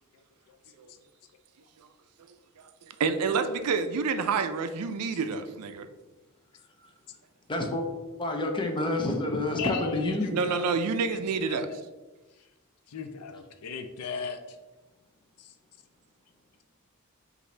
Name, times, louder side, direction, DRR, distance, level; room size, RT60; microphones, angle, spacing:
voice 1, 3.0-5.9 10.3-11.7, right 5 dB, 90° right, 9 dB, 0.4 m, -28 dB
voice 2, 7.5-7.8 8.2-10.3, left 2 dB, 20° left, 2 dB, 0.5 m, -28 dB
voice 3, 9.6-10.8 11.0-11.8 12.9-14.6 15.4-15.5, left 5 dB, 90° left, 8 dB, 0.5 m, -37 dB
5.5 x 2.6 x 3.2 m, 1.1 s
head